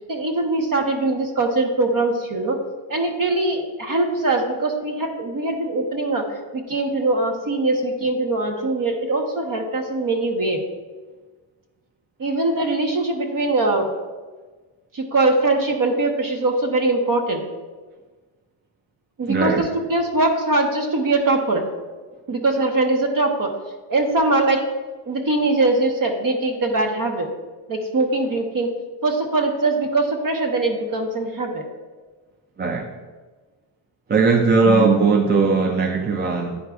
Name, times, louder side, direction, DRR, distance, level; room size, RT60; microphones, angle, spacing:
voice 1, 0.1-2.6 2.9-6.3 6.5-10.6 12.2-13.9 14.9-17.4 19.2-21.6 22.3-23.5 23.9-24.6 25.0-27.3 27.7-28.7 29.0-31.7, right 2 dB, 40° right, 4 dB, 1.0 m, -22 dB
voice 2, 19.3-19.6 32.6-32.9 34.1-36.6, right 4 dB, 25° right, 3 dB, 0.4 m, -18 dB
9.4 x 4.7 x 2.4 m, 1.3 s
cardioid pair, 100°, 50 cm